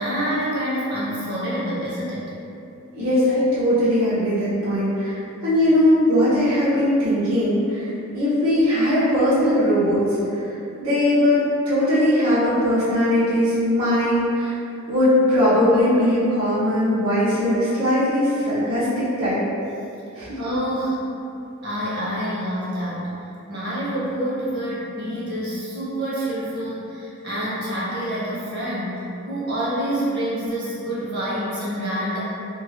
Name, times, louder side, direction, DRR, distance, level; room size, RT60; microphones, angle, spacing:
voice 1, 0.0-2.3 20.4-21.0 21.6-23.1 23.5-32.2, equal, 50° right, -8 dB, 0.9 m, -27 dB
voice 2, 2.9-10.0 10.3-10.4 10.8-14.6 14.9-19.4 20.1-20.4, left 1 dB, 85° right, -12 dB, 1.1 m, -20 dB
2.9 x 2.3 x 2.9 m, 2.7 s
head